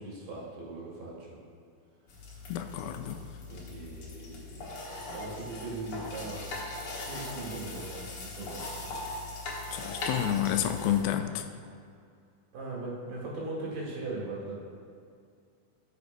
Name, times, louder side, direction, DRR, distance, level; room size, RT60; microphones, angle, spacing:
voice 1, 0.0-1.4 2.8-2.9 3.5-4.7 5.1-6.5 7.1-8.9 12.5-14.5, right 2 dB, 75° right, -5 dB, 3.7 m, -39 dB
sound 1, 2.1-11.0, left 2 dB, 60° left, 1.4 m, -40 dB
voice 2, 2.5-3.2 9.7-11.4, left 10 dB, 90° left, 7 dB, 2.5 m, -29 dB
13.0 x 6.9 x 2.6 m, 2.3 s
omnidirectional pair, 4.4 m